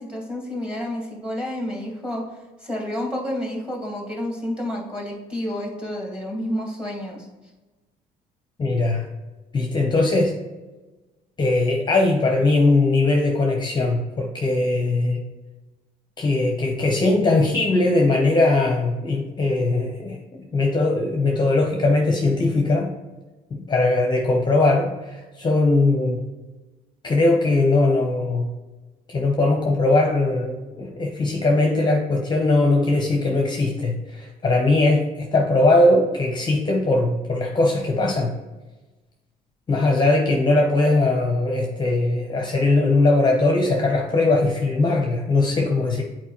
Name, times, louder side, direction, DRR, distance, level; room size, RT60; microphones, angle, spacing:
voice 1, 0.0-2.2 2.6-7.3, left 1 dB, 5° right, -1 dB, 1.8 m, -29 dB
voice 2, 8.6-9.0 9.5-10.3 11.4-15.2 16.2-22.9 23.5-26.2 27.0-28.5 29.1-38.3 39.7-46.0, left 2 dB, 25° left, 1 dB, 0.7 m, -20 dB
8.2 x 4.4 x 3.0 m, 1.2 s
cardioid pair, 110°, 17 cm